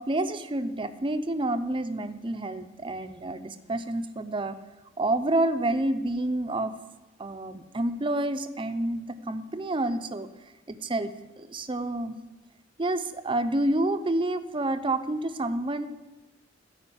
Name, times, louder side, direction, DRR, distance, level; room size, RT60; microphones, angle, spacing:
voice 1, 0.0-4.6 5.0-6.7 7.2-10.3 10.7-11.1 11.4-12.2 12.8-15.9, right 1 dB, 25° right, 9 dB, 0.6 m, -28 dB
14.0 x 5.0 x 8.6 m, 1.1 s
head